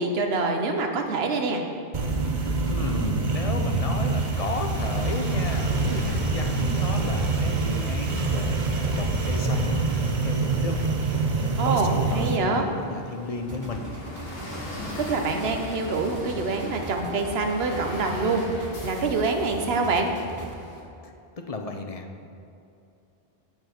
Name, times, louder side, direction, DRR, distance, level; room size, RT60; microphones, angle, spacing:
voice 1, 0.0-1.6 5.9-6.0 11.6-12.7 15.0-20.1, right 3 dB, 75° right, 3 dB, 1.1 m, -26 dB
sound 1, 1.9-12.4, right 3 dB, 50° right, 0.9 m, -25 dB
sound 2, 2.5-20.8, left 1 dB, 70° left, 1.5 m, -41 dB
voice 2, 2.6-10.9 11.6-13.8 14.6-15.0 21.5-22.3, left 3 dB, 40° left, 4 dB, 0.7 m, -34 dB
sound 3, 13.5-20.5, right 2 dB, 25° right, 0.4 m, -40 dB
9.1 x 5.6 x 5.8 m, 2.7 s
omnidirectional pair, 1.0 m